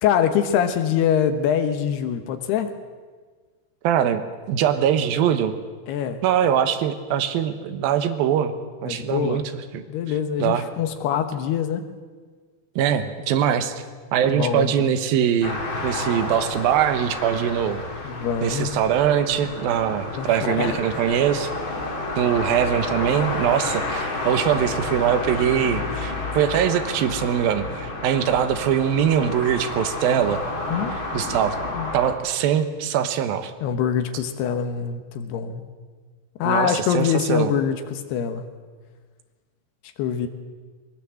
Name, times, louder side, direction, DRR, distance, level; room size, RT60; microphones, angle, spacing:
voice 1, 0.0-2.7 5.9-6.2 8.9-9.4 9.9-11.9 14.2-15.0 18.0-18.7 19.9-21.0 30.7-30.9 31.4-31.9 33.6-35.6 36.4-38.4 40.0-40.3, left 8 dB, 70° left, 8 dB, 3.0 m, -24 dB
voice 2, 3.8-5.6 6.2-8.5 8.8-9.4 9.7-9.8 10.4-10.7 12.8-13.7 14.1-17.8 18.4-21.5 22.2-30.4 31.1-31.6 31.9-33.5 36.4-37.5, right 9 dB, 70° right, 9 dB, 2.4 m, -22 dB
sound 1, 15.4-32.1, left 2 dB, 30° left, 2.9 m, -30 dB
21.0 x 19.0 x 7.7 m, 1.5 s
omnidirectional pair, 5.4 m